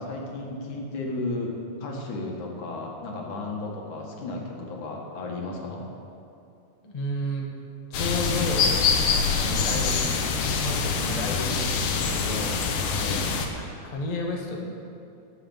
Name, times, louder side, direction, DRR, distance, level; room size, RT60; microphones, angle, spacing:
voice 1, 0.0-1.5 1.8-5.9 13.0-13.3, left 2 dB, 70° left, -1 dB, 3.1 m, -33 dB
voice 2, 6.8-7.4 7.9-8.7 9.2-10.2 10.6-12.5 13.2-13.4 13.8-14.6, left 1 dB, 25° left, -1 dB, 0.8 m, -32 dB
sound 1, 7.9-13.5, left 5 dB, 85° left, 2.7 m, -25 dB
18.5 x 7.0 x 7.2 m, 2.6 s
omnidirectional pair, 3.6 m